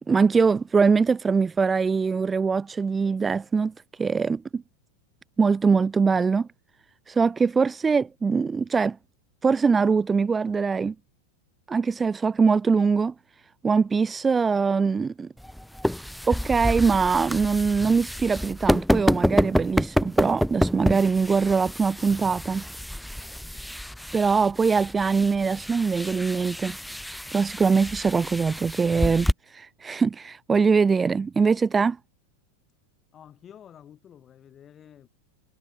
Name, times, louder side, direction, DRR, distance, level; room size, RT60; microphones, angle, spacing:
voice 1, 0.1-3.7 4.0-4.6 5.4-6.5 7.1-9.0 9.4-10.9 11.7-13.1 13.6-15.3 16.3-22.6 24.1-26.8 27.3-32.0, right 5 dB, 15° right, 0.4 m, -22 dB
sound 1, 15.4-29.3, equal, ahead, 0.8 m, -28 dB
voice 2, 33.1-35.1, left 9 dB, 25° left, 8.0 m, -49 dB
figure-of-eight pair, 90°, 0 cm